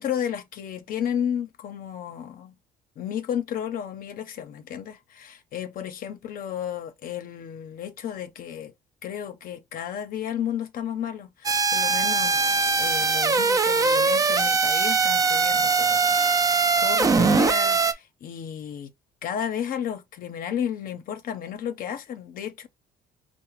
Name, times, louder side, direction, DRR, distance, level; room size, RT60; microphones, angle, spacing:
voice 1, 0.0-2.5 3.0-8.7 9.0-12.4 12.8-18.9 19.2-22.7, left 9 dB, 55° left, 0.6 m, -33 dB
sound 1, 11.4-17.9, right 4 dB, 20° right, 0.4 m, -21 dB
4.7 x 2.1 x 3.0 m
cardioid pair, 110°, 17 cm